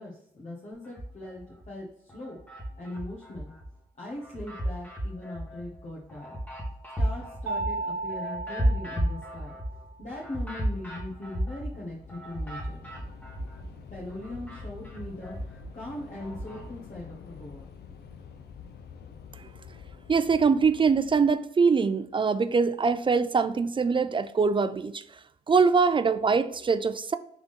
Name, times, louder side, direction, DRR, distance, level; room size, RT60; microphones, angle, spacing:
voice 1, 0.0-2.4 2.8-3.5 3.9-6.3 7.0-9.5 10.0-12.9 13.9-17.7, left 1 dB, 45° left, 1.2 m, -40 dB
sound 1, 0.8-1.7 2.1-3.7 4.1-13.8 14.1-16.7, equal, 10° left, 1.5 m, -34 dB
Mallet percussion, 7.5-10.0, right 3 dB, 70° right, 0.6 m, -35 dB
Train / Subway metro underground, 8.3-8.5 8.8-21.3, left 7 dB, 70° left, 0.6 m, -48 dB
voice 2, 20.1-25.0 25.5-27.1, right 5 dB, 30° right, 0.4 m, -23 dB
3.6 x 3.5 x 3.6 m
cardioid pair, 65°, 17 cm